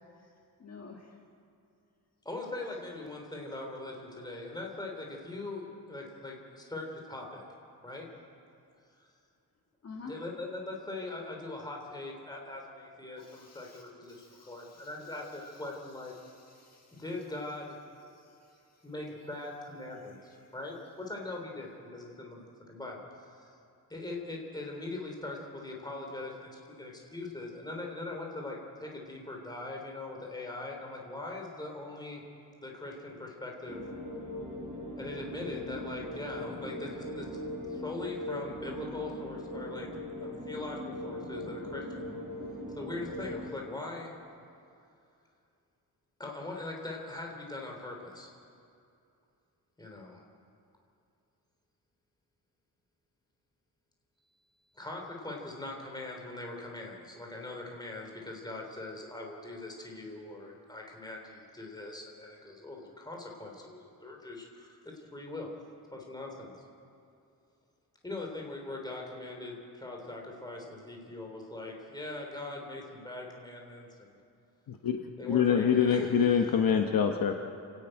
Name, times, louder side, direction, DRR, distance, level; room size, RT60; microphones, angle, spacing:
voice 1, 0.6-1.1 9.8-10.1 13.2-13.8 14.1-15.7 16.1-17.0 18.1-18.8, left 4 dB, 40° left, 0 dB, 1.7 m, -51 dB
voice 2, 2.2-7.4 7.8-8.1 9.0-9.1 10.0-16.1 16.9-17.8 18.8-23.5 23.9-32.2 32.6-33.8 35.0-39.9 40.2-42.1 42.8-44.1 46.2-48.3 49.8-50.2 54.7-65.5 65.9-66.5 68.0-74.2 75.2-76.5, left 2 dB, 10° left, 0 dB, 3.1 m, -41 dB
sound 1, 33.7-43.5, left 1 dB, 20° right, 4.3 m, -40 dB
voice 3, 74.7-77.4, left 7 dB, 60° left, 4 dB, 1.1 m, -25 dB
28.5 x 11.0 x 8.9 m, 2.6 s
wide cardioid pair, 175°, 39 cm